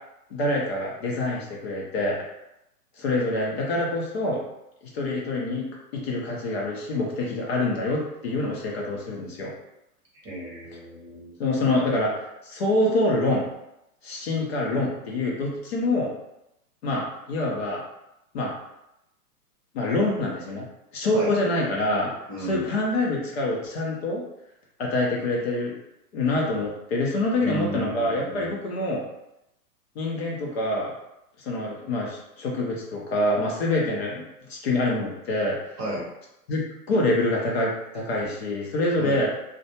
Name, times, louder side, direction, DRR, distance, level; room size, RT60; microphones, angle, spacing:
voice 1, 0.3-2.2 3.0-4.4 4.9-5.7 5.9-9.5 11.4-13.4 14.0-16.1 16.8-17.8 18.3-18.5 19.7-20.6 20.9-22.1 22.4-24.2 24.8-25.7 26.1-29.0 30.0-30.9 31.4-34.2 34.5-35.5 36.5-36.6 36.9-39.3, left 2 dB, 40° left, -3 dB, 0.6 m, -26 dB
voice 2, 10.2-11.3 21.1-21.3 22.3-22.7 27.4-28.6 35.8-36.1 39.0-39.2, right 1 dB, 25° right, -5 dB, 0.8 m, -33 dB
2.4 x 2.2 x 2.8 m, 0.88 s
figure-of-eight pair, 110°, 48 cm